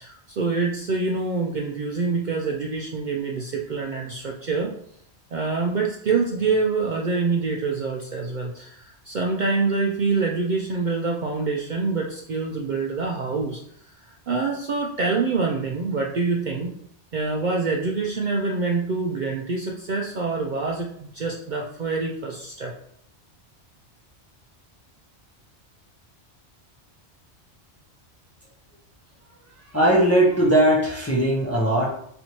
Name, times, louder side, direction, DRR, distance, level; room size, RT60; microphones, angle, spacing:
voice 1, 0.0-4.7 5.3-13.6 14.3-16.7 17.1-22.7, right 4 dB, 55° right, 0 dB, 0.5 m, -26 dB
voice 2, 29.6-31.9, right 1 dB, 15° left, -3 dB, 0.6 m, -19 dB
4.1 x 3.3 x 2.9 m, 0.67 s
omnidirectional pair, 1.2 m